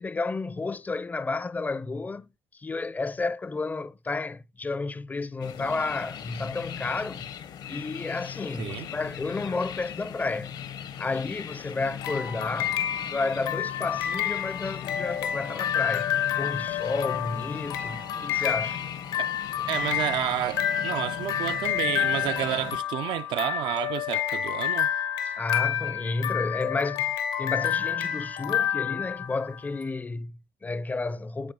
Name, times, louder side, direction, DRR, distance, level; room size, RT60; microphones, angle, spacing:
voice 1, 0.0-2.3 2.5-7.3 7.7-10.6 11.0-18.8 25.4-27.1 27.4-31.5, left 3 dB, 20° left, 0.4 m, -31 dB
sound 1, 5.4-22.8, left 9 dB, 60° left, 0.7 m, -39 dB
sound 2, 12.0-29.7, left 10 dB, 85° left, 1.0 m, -29 dB
voice 2, 19.7-24.9, right 12 dB, 70° right, 0.4 m, -30 dB
8.7 x 3.6 x 3.7 m
cardioid pair, 95°, 8 cm